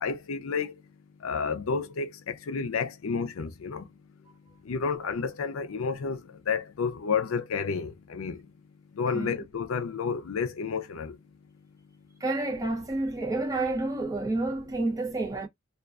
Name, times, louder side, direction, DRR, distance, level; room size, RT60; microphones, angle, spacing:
voice 1, 0.0-0.7 1.2-3.8 4.7-6.2 6.5-8.4 9.0-11.1, left 5 dB, 90° left, 0.5 m, -30 dB
voice 2, 12.2-15.5, right 2 dB, 15° right, 0.6 m, -29 dB
2.4 x 2.2 x 2.4 m
head